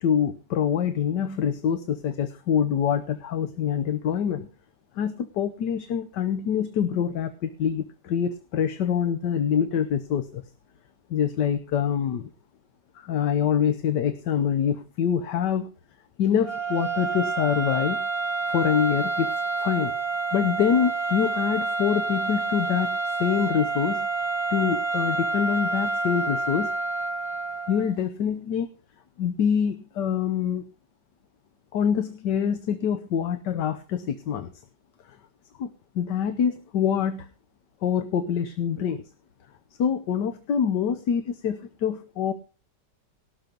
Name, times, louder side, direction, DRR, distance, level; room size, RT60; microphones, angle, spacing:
voice 1, 0.0-4.5 5.0-10.4 11.1-12.3 12.9-15.7 16.2-18.0 18.5-19.3 19.6-19.9 20.3-24.1 24.5-26.7 27.7-28.7 29.2-30.6 31.7-34.5 35.6-35.7 35.9-37.3 37.8-39.0 39.8-42.3, left 8 dB, 80° left, 10 dB, 1.6 m, -25 dB
sound 1, 16.4-27.9, right 3 dB, 20° right, 1.4 m, -28 dB
18.0 x 6.6 x 5.3 m, 0.35 s
omnidirectional pair, 1.8 m